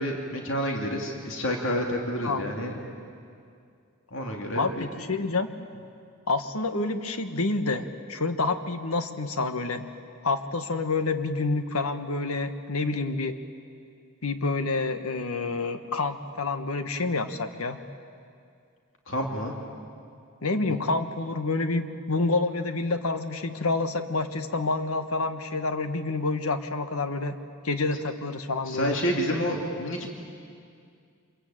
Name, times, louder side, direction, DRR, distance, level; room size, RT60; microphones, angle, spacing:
voice 1, 0.0-2.7 4.1-4.9 19.1-19.5 28.7-30.1, equal, 65° left, 1 dB, 2.6 m, -29 dB
voice 2, 4.5-5.5 5.7-5.8 6.3-9.9 10.2-13.4 14.2-17.8 20.4-27.4 27.6-29.0, left 3 dB, 85° left, 8 dB, 1.4 m, -28 dB
26.0 x 22.5 x 8.9 m, 2.3 s
head